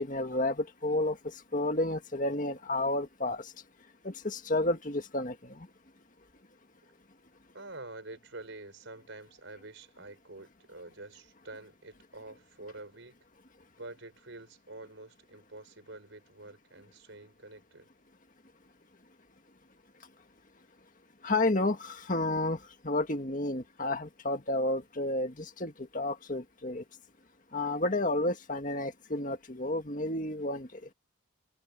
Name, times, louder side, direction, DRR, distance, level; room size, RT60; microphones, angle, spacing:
voice 1, 0.0-3.5 4.0-5.7 21.2-26.8 27.5-30.8, left 2 dB, 40° left, 2.0 m, -31 dB
voice 2, 7.5-13.2 13.8-17.9, right 2 dB, 65° right, 5.0 m, -47 dB
head